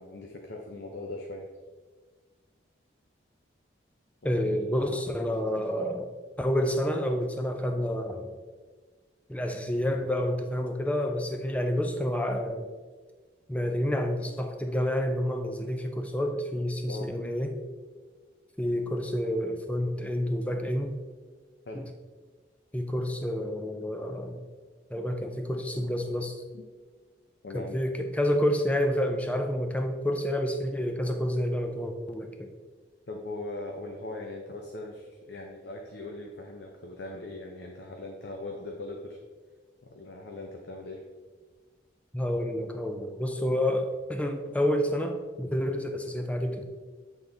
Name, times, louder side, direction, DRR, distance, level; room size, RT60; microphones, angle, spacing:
voice 1, 0.0-1.5 4.2-5.0 16.9-17.4 21.6-21.9 26.5-26.6 27.4-27.8 33.1-39.2 39.8-41.0, left 2 dB, 70° left, 1 dB, 0.6 m, -40 dB
voice 2, 4.2-6.1 6.4-8.3 9.3-12.7 13.5-17.5 18.6-20.9 21.7-21.8 22.7-24.4 24.9-26.4 27.5-32.5 42.1-46.6, equal, 5° left, 5 dB, 0.5 m, -29 dB
8.0 x 3.6 x 3.9 m, 1.4 s
head